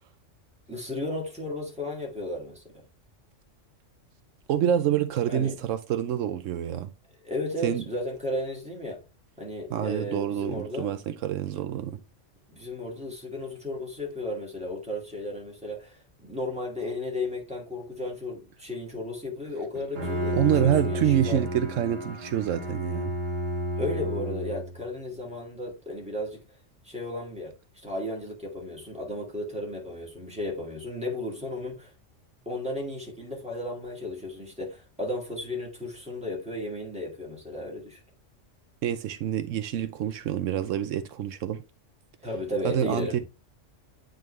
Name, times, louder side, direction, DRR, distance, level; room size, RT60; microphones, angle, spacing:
voice 1, 0.7-2.6 5.3-5.5 7.2-9.0 9.4-10.9 12.5-21.4 23.8-26.4 26.8-31.9 32.5-38.0 42.2-43.2, left 1 dB, 5° right, 1.9 m, -34 dB
voice 2, 4.5-6.9 7.6-7.8 9.7-12.0 20.3-23.1 38.8-41.6 42.6-43.2, right 10 dB, 80° right, 1.0 m, -27 dB
Bowed string instrument, 19.7-24.8, equal, 50° right, 1.9 m, -31 dB
9.1 x 3.7 x 3.1 m
omnidirectional pair, 1.3 m